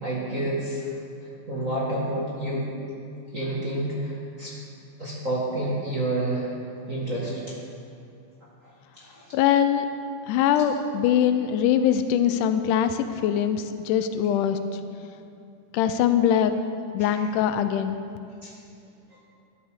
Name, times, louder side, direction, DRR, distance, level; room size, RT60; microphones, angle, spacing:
voice 1, 0.0-0.9 1.5-2.7 3.3-4.5 5.0-6.5 6.9-7.4 8.6-8.7 9.0-9.3 17.0-17.2 18.4-18.5 19.1-19.2, right 1 dB, 35° right, -7 dB, 1.4 m, -29 dB
voice 2, 9.3-9.9 10.3-14.6 15.7-16.5 16.9-18.0, left 9 dB, 85° left, 9 dB, 2.1 m, -22 dB
12.5 x 11.5 x 3.6 m, 2.5 s
omnidirectional pair, 3.6 m